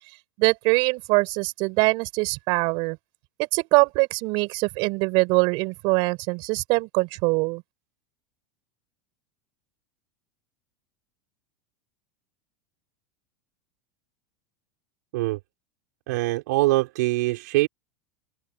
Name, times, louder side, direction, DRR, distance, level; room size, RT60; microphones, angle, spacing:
voice 1, 0.4-3.0 3.4-7.6, right 28 dB, 55° right, 5.8 m, -23 dB
voice 2, 16.1-17.7, right 20 dB, 75° right, 6.1 m, -23 dB
open air
supercardioid pair, 130°, 10 cm